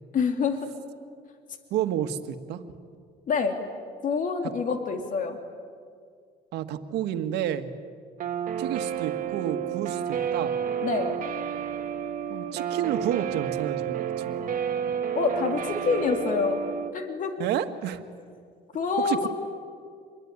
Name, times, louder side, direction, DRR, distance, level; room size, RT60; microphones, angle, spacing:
voice 1, 0.1-0.7 3.3-3.6 4.0-5.4 10.8-11.1 15.1-16.6 16.9-17.3 18.7-19.3, left 5 dB, 50° left, 5 dB, 2.7 m, -26 dB
voice 2, 1.7-2.6 6.5-7.8 8.6-10.6 12.3-14.5 17.4-18.0 19.0-19.3, right 10 dB, 85° right, 8 dB, 1.7 m, -30 dB
Guitar, 8.2-16.9, right 8 dB, 55° right, 1.8 m, -30 dB
27.5 x 22.0 x 9.6 m, 2.1 s
cardioid pair, 110°, 17 cm